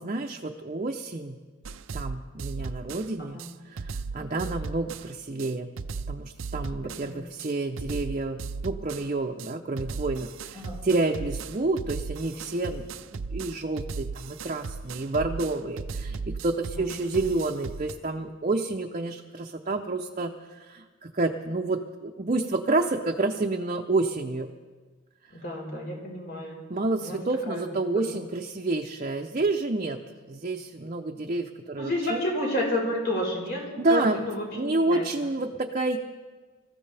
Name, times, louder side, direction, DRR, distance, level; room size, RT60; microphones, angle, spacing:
voice 1, 0.0-1.4 1.9-5.7 6.1-24.5 26.7-30.0 30.3-32.2 33.8-34.2 34.5-36.0, right 2 dB, 40° right, 2 dB, 0.7 m, -29 dB
sound 1, 1.6-3.1 3.4-5.1 5.4-5.5 5.8-7.1 7.4-7.5 7.8-9.1 9.4-9.5 9.8-17.9, right 4 dB, 85° right, 0.6 m, -36 dB
voice 2, 10.5-10.8 16.7-16.9 25.3-26.6 27.0-27.2 27.5-27.8 28.1-28.2 31.7-33.6 33.9-35.1, left 1 dB, 55° left, -2 dB, 4.6 m, -31 dB
25.5 x 14.5 x 3.4 m, 1.4 s
head